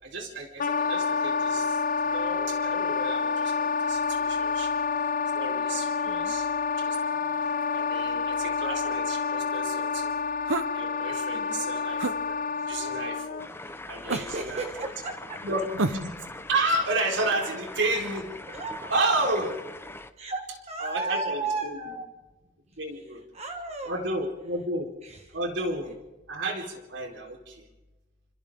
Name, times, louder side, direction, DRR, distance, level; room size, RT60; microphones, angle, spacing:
voice 1, 0.0-1.8 2.1-4.7 5.3-6.5 6.8-7.0 7.7-10.1 10.7-12.4 12.7-13.4 13.9-14.6 15.4-15.6 15.9-18.4 18.9-19.5 20.8-21.9 22.8-23.2 23.8-24.9 25.3-25.9 26.3-27.6, right 2 dB, 65° right, 2 dB, 4.1 m, -31 dB
Wind instrument woodwind instrument, 0.6-13.5, left 5 dB, 45° left, 0.9 m, -28 dB
sound 1, 10.5-10.8 12.0-12.2 14.1-14.5 15.8-16.2, right 3 dB, 90° right, 1.0 m, -29 dB
voice 2, 11.3-11.7 14.1-15.4 17.2-17.5 18.5-18.8 20.2-22.1 23.3-23.9 25.0-25.4 25.8-25.9, right 3 dB, 35° right, 4 dB, 1.5 m, -35 dB
sound 2, 13.4-20.1, left 2 dB, 10° left, 0.8 m, -42 dB
29.0 x 26.0 x 3.8 m, 1.1 s
head